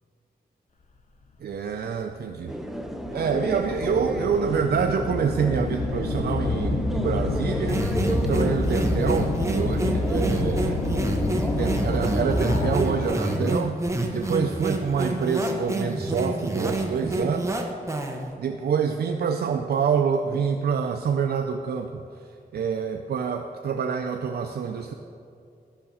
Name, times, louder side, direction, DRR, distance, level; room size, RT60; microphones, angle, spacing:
voice 1, 1.4-2.5 3.1-10.8 11.5-13.7 14.1-17.6 18.4-22.0 22.5-24.9, right 6 dB, 75° right, 4 dB, 0.5 m, -26 dB
sound 1, 1.6-1.7 2.4-13.1, left 2 dB, 45° left, 0.8 m, -28 dB
sound 2, 2.5-13.6, equal, ahead, 0.6 m, -34 dB
sound 3, 7.7-18.3, right 1 dB, 20° right, 0.9 m, -28 dB
11.5 x 5.8 x 6.9 m, 2.5 s
wide cardioid pair, 145°, 16 cm